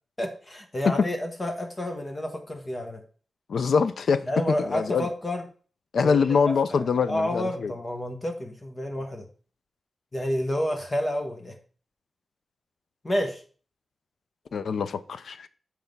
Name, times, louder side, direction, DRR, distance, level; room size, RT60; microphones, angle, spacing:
voice 1, 0.2-3.0 4.3-5.4 6.0-9.3 10.1-11.6 13.0-13.4, equal, 20° left, 1.1 m, -30 dB
voice 2, 3.5-4.2 4.6-5.1 5.9-7.7 14.5-15.5, left 5 dB, 75° left, 0.5 m, -24 dB
7.2 x 4.5 x 5.3 m
wide cardioid pair, 165°, 0 cm